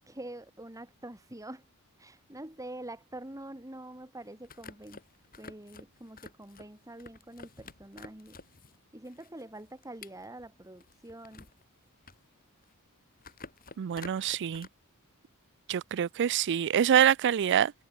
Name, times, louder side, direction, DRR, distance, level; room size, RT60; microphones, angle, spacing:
voice 1, 0.0-1.6 2.0-5.0 5.4-8.4 8.9-11.5, right 1 dB, 15° right, 2.8 m, -45 dB
sound 1, 4.2-8.8 9.0-11.6 11.9-12.9 13.2-14.7, left 4 dB, 40° left, 5.9 m, -50 dB
voice 2, 13.8-14.7 15.7-17.7, right 9 dB, 55° right, 0.4 m, -25 dB
head